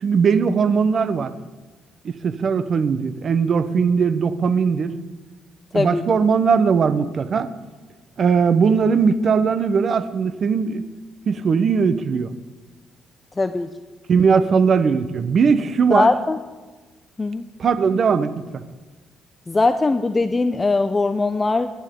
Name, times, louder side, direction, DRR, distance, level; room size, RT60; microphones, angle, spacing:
voice 1, 0.0-1.3 2.0-4.9 5.7-7.5 8.2-10.8 11.3-12.3 14.1-16.1 17.6-18.6, right 5 dB, 50° right, 11 dB, 1.1 m, -19 dB
voice 2, 13.4-13.7 15.9-16.4 17.2-17.5 19.5-21.7, left 3 dB, 25° left, 9 dB, 0.7 m, -20 dB
26.0 x 12.0 x 3.9 m, 1.3 s
cardioid pair, 90°, 0 cm